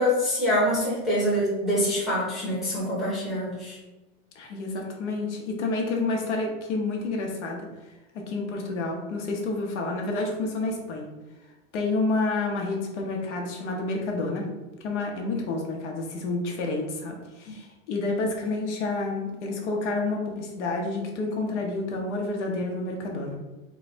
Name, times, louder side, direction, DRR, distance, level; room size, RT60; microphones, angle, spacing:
voice 1, 0.0-3.8, equal, ahead, -9 dB, 0.8 m, -25 dB
voice 2, 4.3-7.7 8.1-11.1 11.7-14.5 14.8-23.3, left 3 dB, 60° left, 0 dB, 1.0 m, -29 dB
4.0 x 2.3 x 4.1 m, 1.1 s
supercardioid pair, 175°, 39 cm